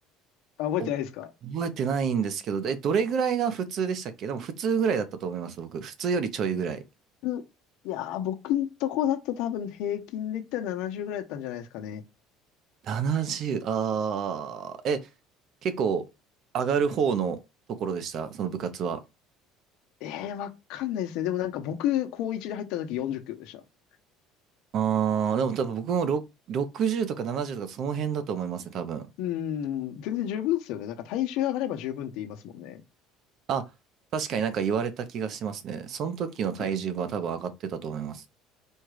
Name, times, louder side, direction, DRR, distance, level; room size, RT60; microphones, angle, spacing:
voice 1, 0.6-1.3 7.2-7.4 7.8-12.0 20.0-23.6 29.2-32.8 36.6-36.7, left 11 dB, 70° left, 0.9 m, -30 dB
voice 2, 1.4-6.8 12.8-15.0 15.6-16.0 16.5-17.4 17.7-19.0 24.7-26.2 26.5-29.1 33.5-33.6 34.1-38.2, right 7 dB, 45° right, 0.7 m, -28 dB
4.5 x 2.4 x 4.8 m
cardioid pair, 145°, 0 cm